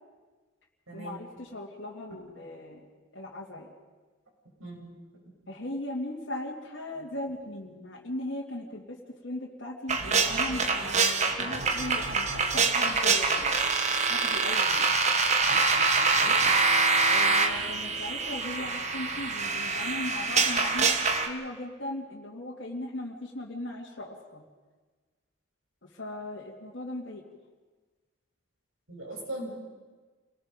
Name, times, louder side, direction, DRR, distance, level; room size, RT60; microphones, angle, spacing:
voice 1, 0.9-2.8 3.1-3.7 5.5-13.6 14.1-14.9 17.1-24.4 25.8-27.2, left 1 dB, 60° left, -4 dB, 2.5 m, -38 dB
voice 2, 4.6-4.9 16.1-16.3 28.9-29.6, right 1 dB, 85° right, -3 dB, 7.9 m, -39 dB
sound 1, 9.9-21.3, right 4 dB, 35° right, 1.5 m, -25 dB
28.5 x 19.0 x 5.3 m, 1.3 s
head